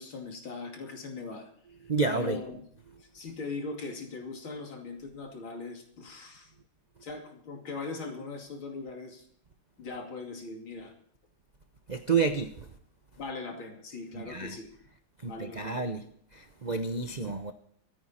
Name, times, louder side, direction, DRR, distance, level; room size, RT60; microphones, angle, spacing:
voice 1, 0.0-1.5 2.1-2.6 3.0-6.5 7.0-9.3 9.8-10.9 13.2-14.7 15.2-15.8, left 3 dB, 70° left, 3.4 m, -40 dB
voice 2, 1.9-2.4 11.9-12.7 14.1-14.6 15.2-16.0 16.3-17.5, right 4 dB, 75° right, 0.4 m, -30 dB
24.5 x 9.4 x 4.3 m
omnidirectional pair, 2.3 m